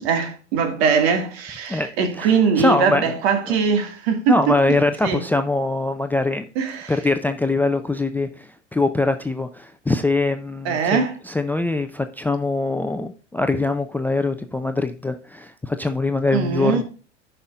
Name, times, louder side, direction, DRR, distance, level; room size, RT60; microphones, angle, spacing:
voice 1, 0.0-4.5 5.0-5.2 6.6-6.9 10.7-11.1 16.3-16.8, right 6 dB, 60° right, 2.0 m, -21 dB
voice 2, 2.2-3.1 4.3-6.5 6.9-16.8, left 2 dB, 5° left, 0.5 m, -23 dB
13.5 x 5.7 x 2.5 m
hypercardioid pair, 90°, 36 cm